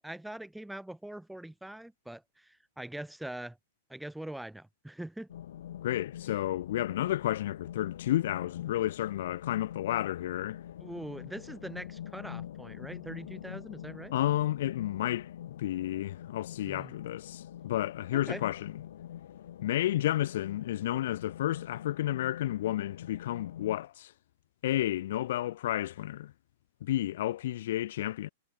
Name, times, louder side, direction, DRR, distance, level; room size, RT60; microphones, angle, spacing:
voice 1, 0.0-3.6 3.9-5.3 10.8-14.1 16.6-16.9 18.1-18.5, right 1 dB, ahead, 3.0 m, -43 dB
sound 1, 5.3-23.8, left 11 dB, 70° left, 1.2 m, -45 dB
voice 2, 5.8-10.6 14.1-18.7 19.6-24.1 24.6-26.3 26.8-28.3, left 13 dB, 55° left, 0.6 m, -31 dB
supercardioid pair, 175°, 0 cm